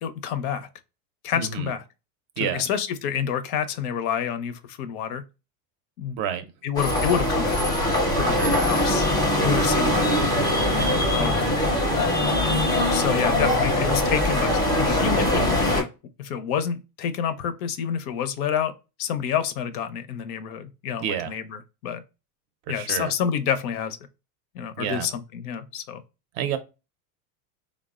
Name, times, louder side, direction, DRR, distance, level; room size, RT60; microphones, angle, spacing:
voice 1, 0.0-0.7 1.2-1.8 2.4-5.2 6.0-6.2 6.6-7.7 8.1-9.1 9.4-10.3 11.1-11.4 12.9-15.9 16.2-18.7 19.0-22.0 22.7-24.0 24.5-26.0, left 8 dB, 65° left, 0.6 m, -28 dB
voice 2, 1.3-1.7 2.4-2.6 6.2-6.4 8.2-8.6 10.7-11.0 21.0-21.3 22.7-23.1 24.8-25.1 26.3-26.6, right 9 dB, 45° right, 0.5 m, -29 dB
sound 1, 6.8-15.8, left 1 dB, 10° left, 0.5 m, -22 dB
3.3 x 2.0 x 2.3 m
supercardioid pair, 125°, 48 cm